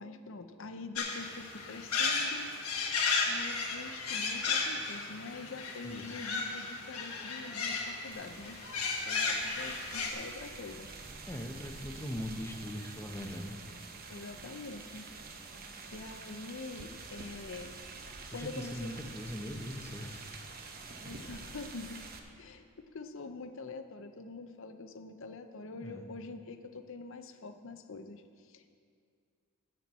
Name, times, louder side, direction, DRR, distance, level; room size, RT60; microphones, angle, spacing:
voice 1, 0.0-2.5 3.2-8.6 9.0-10.9 14.1-15.1 15.9-17.8 18.3-19.0 21.1-22.0 22.4-28.7, left 3 dB, 60° left, 8 dB, 0.7 m, -45 dB
sound 1, 1.0-10.1, left 4 dB, 80° left, 1.4 m, -34 dB
voice 2, 5.8-6.2 11.3-13.6 18.3-20.2 25.8-26.1, equal, 10° left, 3 dB, 0.7 m, -40 dB
sound 2, 8.1-22.2, right 3 dB, 45° right, 0.8 m, -47 dB
13.0 x 4.5 x 8.1 m, 2.2 s
head